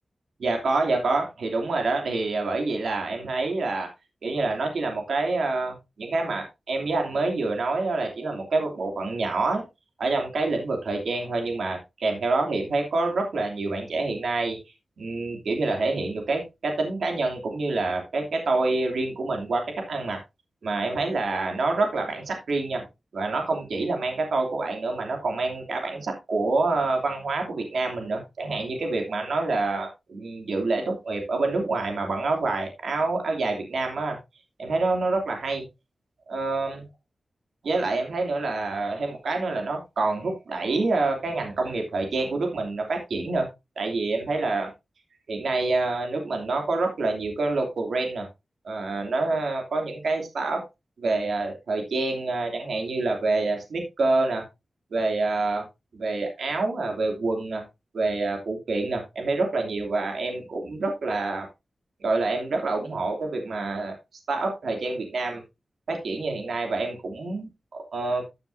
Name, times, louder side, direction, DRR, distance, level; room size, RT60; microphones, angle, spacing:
voice 1, 0.4-3.9 4.2-9.6 10.0-14.6 15.0-19.6 19.9-20.2 20.6-22.8 23.1-34.2 34.6-35.6 36.3-36.8 37.6-43.5 43.8-44.7 45.3-48.3 48.6-50.6 51.0-54.4 54.9-55.6 55.9-57.6 57.9-61.5 62.0-63.9 64.3-65.4 65.9-68.2, right 3 dB, 85° right, 2 dB, 2.8 m, -27 dB
13.5 x 7.0 x 2.7 m, 0.23 s
wide cardioid pair, 90°, 0 cm